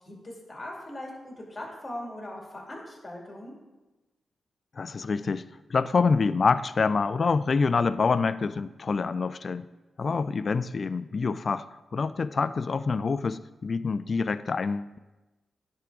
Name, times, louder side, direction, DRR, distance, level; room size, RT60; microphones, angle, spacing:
voice 1, 0.0-3.5 10.0-10.2, left 1 dB, 30° left, -2 dB, 2.6 m, -40 dB
voice 2, 4.8-5.4 5.7-9.7 10.0-11.7 11.9-15.0, left 4 dB, 50° left, 15 dB, 0.3 m, -26 dB
10.0 x 3.6 x 4.9 m, 1.1 s
cardioid pair, 65°, 0 cm